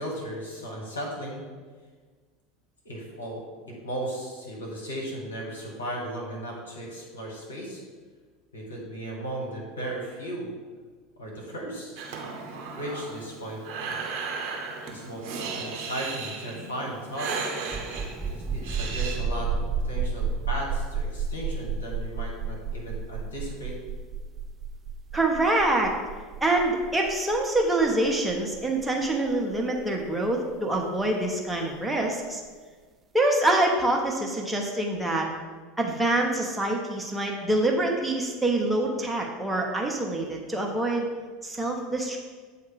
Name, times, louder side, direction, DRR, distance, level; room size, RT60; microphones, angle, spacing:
voice 1, 0.0-1.4 2.8-7.8 8.5-10.5 11.2-12.0 12.7-13.6 14.9-17.3 18.3-23.7, right 1 dB, 85° left, -2 dB, 1.5 m, -36 dB
Breathing, 12.0-19.2, right 4 dB, 55° right, 1.2 m, -35 dB
sound 1, 17.7-31.0, right 5 dB, 30° right, 0.4 m, -32 dB
voice 2, 25.1-25.9 26.4-32.4 33.1-35.3 35.8-41.1 41.4-42.2, right 2 dB, 5° right, -1 dB, 1.1 m, -25 dB
8.2 x 2.8 x 5.0 m, 1.5 s
figure-of-eight pair, 75°, 0 cm